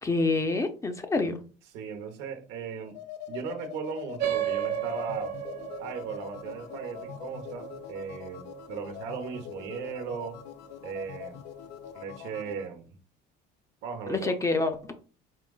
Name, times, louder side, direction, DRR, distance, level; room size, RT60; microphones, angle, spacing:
voice 1, 0.0-1.4 14.1-14.9, left 3 dB, 15° left, 0.5 m, -27 dB
voice 2, 1.7-3.0 3.3-5.3 5.8-10.4 10.8-11.4 11.9-12.9 13.8-14.3, right 6 dB, 85° right, 0.9 m, -37 dB
sound 1, 2.8-12.7, left 11 dB, 70° left, 0.4 m, -43 dB
sound 2, 4.2-9.1, right 11 dB, 65° right, 0.7 m, -34 dB
4.6 x 3.5 x 2.3 m
cardioid pair, 130°, 18 cm